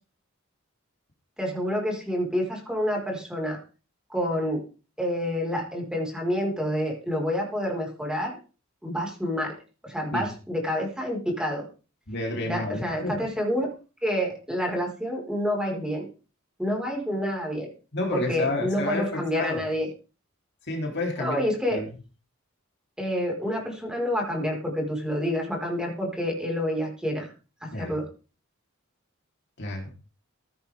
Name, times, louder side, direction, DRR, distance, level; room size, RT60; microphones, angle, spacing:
voice 1, 1.4-3.6 4.1-4.6 5.0-8.3 8.8-9.5 9.8-11.6 12.4-13.7 14.0-16.1 16.6-17.7 18.1-19.9 21.2-21.8 23.0-27.3 27.6-28.1, equal, 5° right, 0 dB, 4.9 m, -28 dB
voice 2, 12.1-13.2 17.9-19.6 20.7-21.8 27.7-27.9 29.6-29.9, left 2 dB, 55° left, 1 dB, 3.7 m, -30 dB
16.0 x 11.0 x 3.6 m, 0.35 s
head